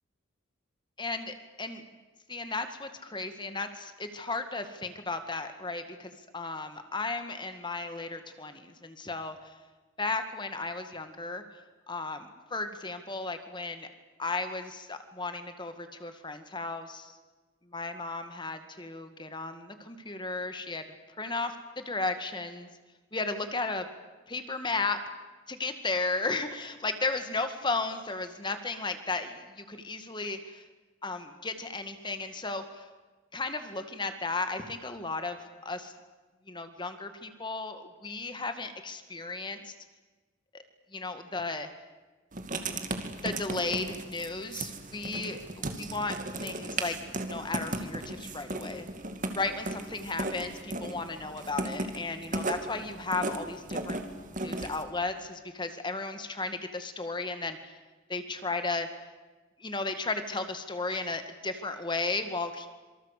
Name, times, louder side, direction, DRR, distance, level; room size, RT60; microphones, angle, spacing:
voice 1, 1.0-1.8 2.3-9.5 10.0-11.4 11.9-13.9 14.2-17.2 17.7-20.8 21.2-22.7 23.1-23.9 24.3-25.0 25.5-30.6 31.0-32.9 33.3-35.9 36.5-39.7 40.5-40.6 40.9-41.7 43.2-47.0 47.2-48.9 49.3-54.0 54.3-57.7 58.1-58.9 59.6-62.7, left 3 dB, 20° left, 8 dB, 2.0 m, -34 dB
Writing, 42.3-54.8, right 2 dB, 40° right, 2.4 m, -36 dB
27.0 x 24.5 x 8.4 m, 1.2 s
head